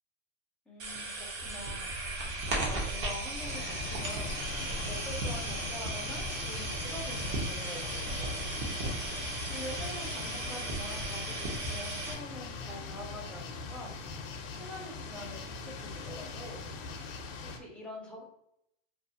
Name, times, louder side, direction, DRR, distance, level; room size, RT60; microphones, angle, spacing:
voice 1, 0.7-4.3 4.8-8.6 9.5-14.2 14.5-16.6 17.4-18.2, left 1 dB, 5° left, -3 dB, 0.6 m, -45 dB
sound 1, 0.8-12.1, right 2 dB, 35° right, 0.8 m, -36 dB
sound 2, 3.4-17.6, left 4 dB, 55° left, 0.5 m, -41 dB
2.5 x 2.3 x 2.6 m, 0.77 s
supercardioid pair, 130°, 37 cm